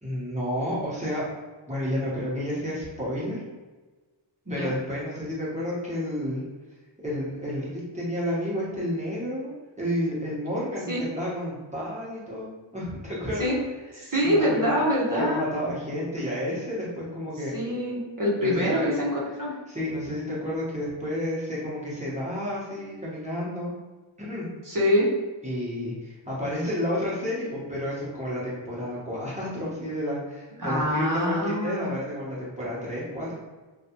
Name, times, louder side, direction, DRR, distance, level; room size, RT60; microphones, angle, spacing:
voice 1, 0.0-1.3 1.7-3.4 4.5-6.4 7.0-13.5 13.9-14.7 15.1-17.5 18.4-18.9 19.7-23.7 24.2-24.5 25.4-33.3, left 1 dB, 15° right, -7 dB, 1.2 m, -31 dB
voice 2, 14.0-15.4 17.5-19.5 24.6-25.1 30.6-31.9, equal, 40° right, -5 dB, 1.1 m, -25 dB
3.1 x 2.5 x 2.9 m, 1.3 s
wide cardioid pair, 65°, 49 cm